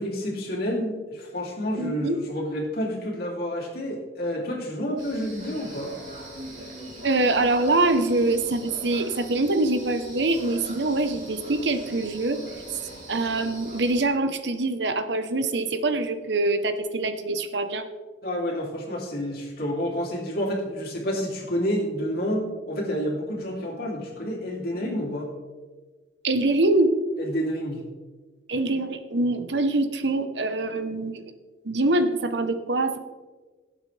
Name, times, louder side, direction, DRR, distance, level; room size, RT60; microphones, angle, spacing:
voice 1, 0.0-5.9 18.2-25.3 27.2-27.8, equal, 55° left, -2 dB, 3.0 m, -29 dB
voice 2, 1.8-2.2 7.0-12.4 13.1-17.9 26.2-26.9 28.5-31.2 31.6-33.0, right 2 dB, 70° right, 8 dB, 1.0 m, -24 dB
sound 1, 5.0-14.0, right 1 dB, 50° right, 3.5 m, -41 dB
17.5 x 8.0 x 3.4 m, 1.3 s
head